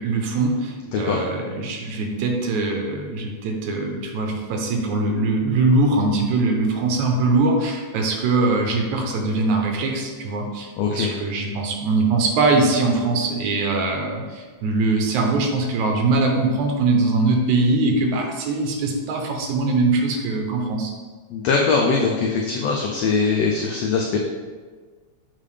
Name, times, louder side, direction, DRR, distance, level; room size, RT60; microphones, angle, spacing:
voice 1, 0.0-20.9, right 3 dB, 85° right, 2 dB, 2.2 m, -22 dB
voice 2, 10.8-11.1 21.3-24.2, left 4 dB, 80° left, 0 dB, 1.5 m, -21 dB
7.3 x 3.9 x 3.3 m, 1.5 s
omnidirectional pair, 3.3 m